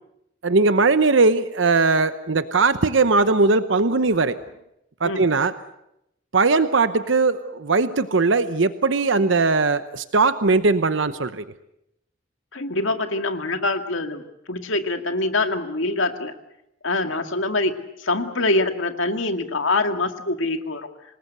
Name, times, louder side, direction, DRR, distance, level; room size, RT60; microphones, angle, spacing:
voice 1, 0.4-4.4 5.0-5.5 6.3-11.4, right 3 dB, 70° right, 12 dB, 0.9 m, -19 dB
voice 2, 12.5-14.2 14.5-16.3 16.8-17.7 18.0-20.9, left 2 dB, 85° left, 6 dB, 2.1 m, -24 dB
26.0 x 20.0 x 8.1 m, 0.83 s
head